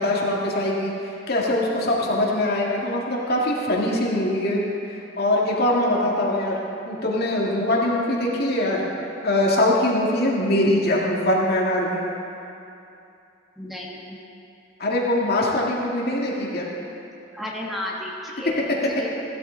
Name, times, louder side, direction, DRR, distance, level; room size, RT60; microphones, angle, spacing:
voice 1, 0.0-4.6 5.2-6.6 6.9-8.8 9.2-12.1 14.8-16.7 18.7-18.8, left 1 dB, 55° left, -3 dB, 2.2 m, -22 dB
voice 2, 13.6-14.2 17.3-19.1, left 1 dB, ahead, -3 dB, 1.4 m, -33 dB
16.5 x 13.0 x 4.0 m, 2.7 s
head